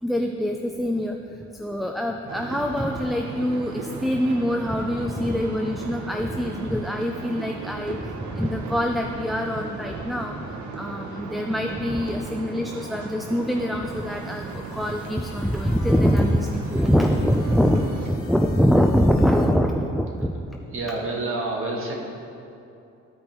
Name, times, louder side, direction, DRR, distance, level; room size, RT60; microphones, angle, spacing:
voice 1, 0.0-20.6, equal, ahead, 2 dB, 0.3 m, -24 dB
sound 1, 2.3-18.1, right 4 dB, 75° right, 0.9 m, -36 dB
sound 2, 13.8-19.6, left 5 dB, 45° left, 0.9 m, -48 dB
voice 2, 20.7-21.9, right 2 dB, 45° right, -1 dB, 1.5 m, -28 dB
14.0 x 5.1 x 3.0 m, 2.7 s
cardioid pair, 90°, 30 cm